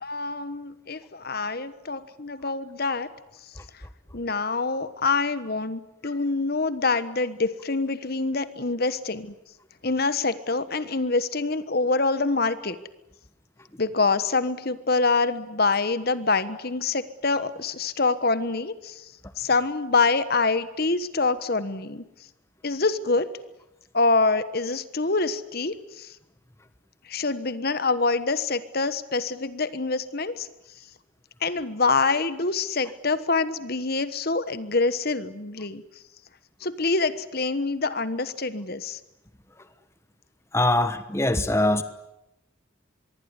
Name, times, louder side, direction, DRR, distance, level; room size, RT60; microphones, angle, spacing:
voice 1, 0.0-3.1 4.1-9.3 9.8-12.8 13.8-19.1 19.4-22.0 22.6-23.3 23.9-26.1 27.1-30.5 31.4-35.8 36.6-39.0, left 3 dB, 50° left, 13 dB, 1.3 m, -25 dB
voice 2, 40.5-41.8, left 1 dB, 15° left, 11 dB, 1.2 m, -22 dB
25.0 x 22.5 x 9.8 m, 0.89 s
head